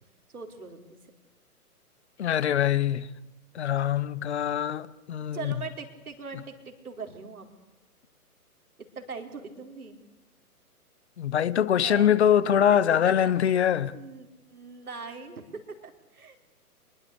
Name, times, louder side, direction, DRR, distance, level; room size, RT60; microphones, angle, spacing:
voice 1, 0.3-1.0 5.3-7.5 8.9-10.0 11.8-12.8 13.0-16.5, right 5 dB, 65° right, 4.5 m, -41 dB
voice 2, 2.2-3.1 3.5-5.5 11.2-14.0, left 9 dB, 45° left, 1.1 m, -23 dB
25.5 x 22.5 x 8.4 m
figure-of-eight pair, 130°, 46 cm